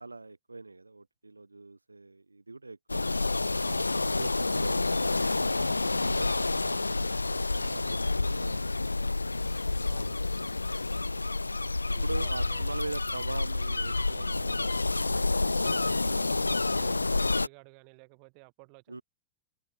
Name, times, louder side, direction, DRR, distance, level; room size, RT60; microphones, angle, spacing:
voice 1, 0.0-3.3 4.2-10.2 12.0-14.8 18.9-19.0, right 3 dB, 80° right, 7.2 m, -42 dB
sound 1, 2.9-17.5, left 3 dB, 80° left, 0.3 m, -29 dB
voice 2, 3.6-4.0 9.9-10.2 11.9-12.7 15.4-19.0, right 40 dB or more, 45° right, 5.9 m, -53 dB
figure-of-eight pair, 90°, 0 cm